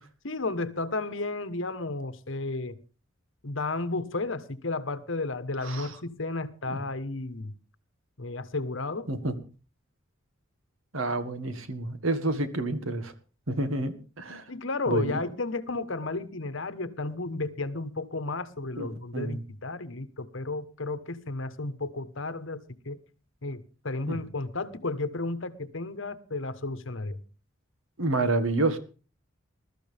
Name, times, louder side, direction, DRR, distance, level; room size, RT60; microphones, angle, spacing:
voice 1, 0.2-2.8 3.4-7.5 8.2-9.1 14.5-23.0 23.4-27.2, left 3 dB, 65° left, 1.3 m, -33 dB
voice 2, 10.9-13.1 13.5-14.4 14.9-15.1 18.8-19.4 24.1-24.2 28.0-28.8, right 2 dB, 85° right, 1.9 m, -29 dB
21.0 x 13.5 x 3.5 m
head